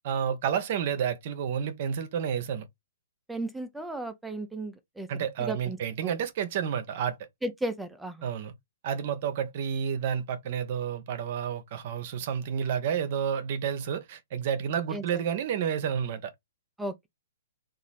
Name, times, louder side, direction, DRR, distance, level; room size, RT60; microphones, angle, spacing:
voice 1, 0.0-2.6 5.1-7.2 8.2-8.5 8.8-16.3, right 8 dB, 50° right, 0.7 m, -30 dB
voice 2, 3.3-5.1 5.4-5.8 6.0-6.1 7.4-8.2 14.9-15.2 16.8-17.1, right 1 dB, 5° right, 0.5 m, -35 dB
3.0 x 2.5 x 4.1 m
hypercardioid pair, 125°, 0 cm